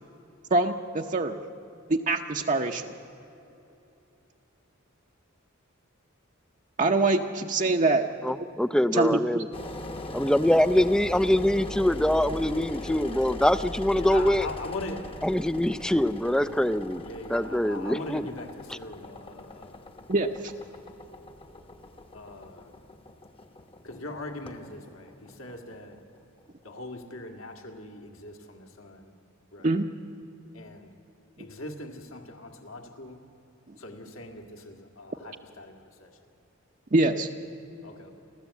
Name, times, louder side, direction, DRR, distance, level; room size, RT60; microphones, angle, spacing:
voice 1, 0.5-1.4 1.9-2.9 6.8-8.0 8.9-9.4 20.1-20.5 29.6-29.9 36.9-37.3, right 2 dB, 35° right, 3 dB, 0.8 m, -24 dB
voice 2, 8.2-9.5 10.1-14.5 15.2-17.0 17.3-18.3 18.7-18.8, left 1 dB, 5° left, 14 dB, 0.4 m, -24 dB
Engine, 9.5-26.4, left 1 dB, 25° left, 1.0 m, -41 dB
voice 3, 13.9-15.1 17.0-19.8 22.1-22.7 23.8-26.0 26.6-29.1 29.5-29.7 30.5-30.9 31.4-33.2 33.8-35.7 36.0-36.1 37.8-38.1, left 2 dB, 75° left, 4 dB, 2.3 m, -40 dB
29.5 x 13.0 x 8.3 m, 2.9 s
head